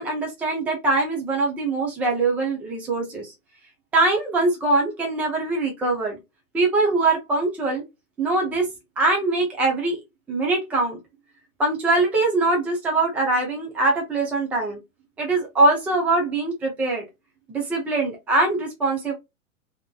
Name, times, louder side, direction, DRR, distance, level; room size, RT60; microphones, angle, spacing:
voice 1, 0.0-3.3 3.9-6.2 6.5-7.8 8.2-8.7 9.0-10.0 10.3-11.0 11.6-14.8 15.2-17.0 17.5-19.1, right 2 dB, 5° right, 0.4 m, -22 dB
3.5 x 2.8 x 2.2 m
hypercardioid pair, 120°, 43 cm